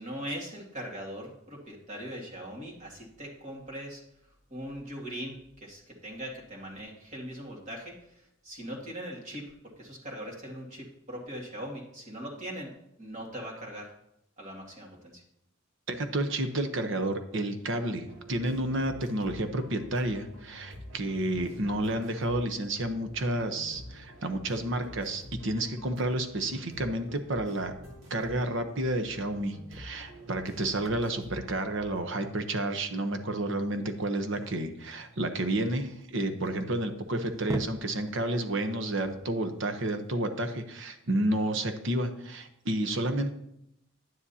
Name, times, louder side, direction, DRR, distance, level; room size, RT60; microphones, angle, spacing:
voice 1, 0.0-4.0 4.5-12.7 13.0-13.9 14.4-15.2, equal, 35° right, -2 dB, 2.2 m, -40 dB
voice 2, 15.9-27.7 28.1-43.3, right 1 dB, 65° right, 7 dB, 0.9 m, -30 dB
sound 1, 18.0-32.0, left 1 dB, 90° right, 2.5 m, -48 dB
sound 2, 27.4-40.1, right 1 dB, 15° right, 0.6 m, -45 dB
10.5 x 9.8 x 2.8 m, 0.77 s
head